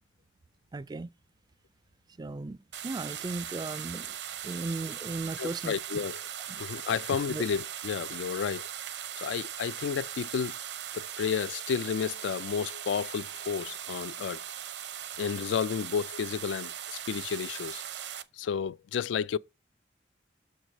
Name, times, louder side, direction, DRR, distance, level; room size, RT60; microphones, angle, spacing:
voice 1, 0.7-1.1 2.2-2.6 2.8-4.2 4.4-5.7 6.5-6.6 6.9-7.0 7.3-7.4, right 3 dB, 25° right, 0.3 m, -36 dB
sound 1, 2.7-18.2, right 10 dB, 65° right, 0.7 m, -39 dB
voice 2, 5.4-6.2 6.6-8.7 9.2-10.5 10.9-14.4 15.2-17.8 18.4-19.4, left 7 dB, 80° left, 0.3 m, -32 dB
6.4 x 4.7 x 5.1 m
head